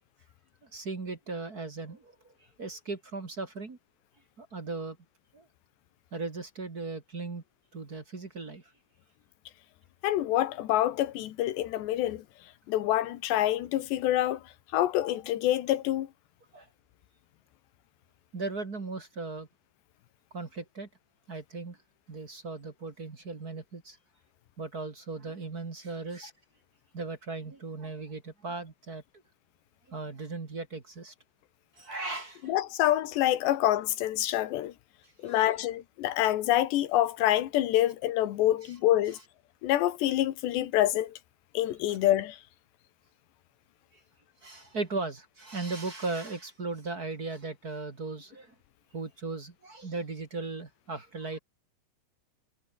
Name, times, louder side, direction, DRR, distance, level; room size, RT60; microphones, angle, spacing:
voice 1, 0.6-3.8 4.4-5.0 5.3-5.5 6.1-7.4 7.7-8.6 16.5-16.7 18.3-19.5 20.3-20.9 21.3-21.8 22.1-24.0 24.6-26.3 26.9-29.0 29.9-31.1 31.8-32.5 35.0-35.5 41.9-42.0 44.4-48.5 48.9-51.4, right 3 dB, 30° right, 1.8 m, -37 dB
voice 2, 10.0-12.2 12.7-14.4 14.7-16.1 32.4-34.7 35.2-39.2 39.6-41.2 41.6-42.4, left 13 dB, 75° left, 3.5 m, -26 dB
omnidirectional pair, 5.2 m